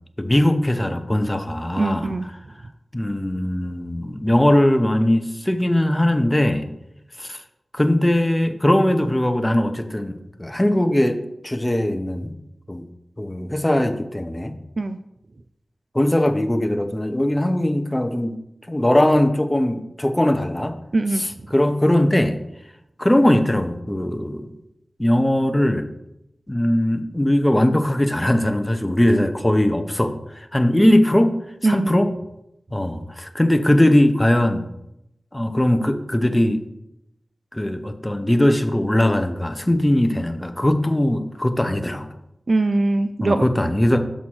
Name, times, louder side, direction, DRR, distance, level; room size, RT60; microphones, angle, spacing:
voice 1, 0.2-2.1 2.9-6.7 7.2-7.4 7.7-12.4 12.7-12.8 13.2-14.6 15.9-18.4 18.7-20.7 21.1-22.4 23.0-24.5 25.0-25.9 26.5-31.4 31.6-32.1 32.7-34.6 35.3-36.6 37.5-42.1 43.2-44.0, left 1 dB, 15° left, 8 dB, 0.7 m, -20 dB
voice 2, 1.8-2.2 14.8-15.0 20.9-21.2 31.6-31.9 42.5-43.4, right 2 dB, 55° right, 9 dB, 0.3 m, -21 dB
6.3 x 4.2 x 6.1 m, 0.85 s
wide cardioid pair, 65°, 0 cm